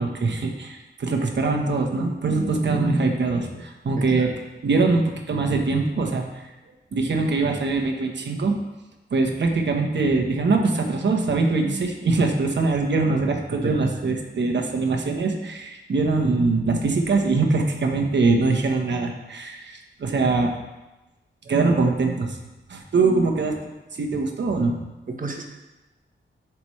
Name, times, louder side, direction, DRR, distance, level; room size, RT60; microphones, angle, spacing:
voice 1, 0.0-4.3 4.6-5.0 5.3-6.4 6.9-8.5 9.1-20.5 21.5-22.4 22.7-23.5 24.0-24.7, right 3 dB, 65° right, 3 dB, 1.1 m, -22 dB
voice 2, 4.0-4.3 13.5-13.8 16.2-16.3 21.4-21.5 25.1-25.4, right 3 dB, 45° right, 2 dB, 1.1 m, -32 dB
12.0 x 6.0 x 3.2 m, 1.1 s
wide cardioid pair, 165°, 20 cm